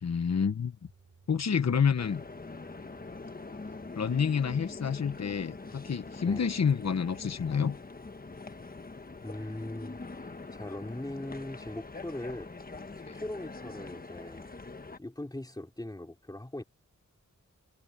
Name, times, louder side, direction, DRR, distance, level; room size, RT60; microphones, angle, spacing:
voice 1, 0.0-0.8 1.3-2.2 4.0-7.8 13.1-13.2, left 6 dB, 55° left, 1.2 m, -28 dB
sound 1, 0.8-7.8, right 4 dB, 60° right, 6.5 m, -60 dB
sound 2, 2.0-15.0, left 3 dB, 30° left, 1.3 m, -44 dB
voice 2, 9.2-12.6 13.1-14.5 15.0-16.6, left 1 dB, 15° left, 3.0 m, -40 dB
wide cardioid pair, 110°, 31 cm